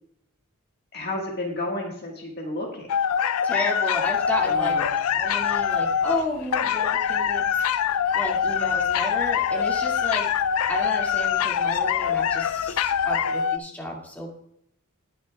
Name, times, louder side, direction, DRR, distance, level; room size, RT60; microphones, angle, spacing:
voice 1, 0.9-2.9 4.5-4.8, left 1 dB, 45° left, -1 dB, 1.7 m, -31 dB
sound 1, 2.9-13.6, left 8 dB, 70° left, 0.4 m, -24 dB
voice 2, 3.4-4.8 5.1-7.5 8.1-10.3 10.7-14.3, left 1 dB, 5° left, -3 dB, 2.2 m, -32 dB
sound 2, 3.9-13.2, equal, 65° right, 4.0 m, -51 dB
19.5 x 6.7 x 2.3 m, 0.72 s
head